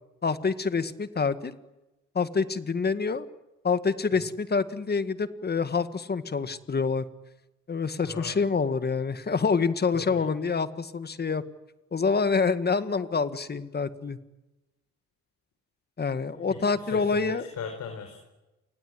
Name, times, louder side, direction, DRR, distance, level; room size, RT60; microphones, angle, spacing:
voice 1, 0.2-1.6 2.2-3.3 3.6-7.1 7.7-11.4 11.9-14.2 16.0-17.4, left 5 dB, 35° left, 12 dB, 1.8 m, -27 dB
voice 2, 8.0-8.4 9.9-10.2 16.5-18.2, left 6 dB, 65° left, 5 dB, 5.1 m, -38 dB
28.5 x 20.0 x 9.6 m, 1.0 s
cardioid pair, 90°, 30 cm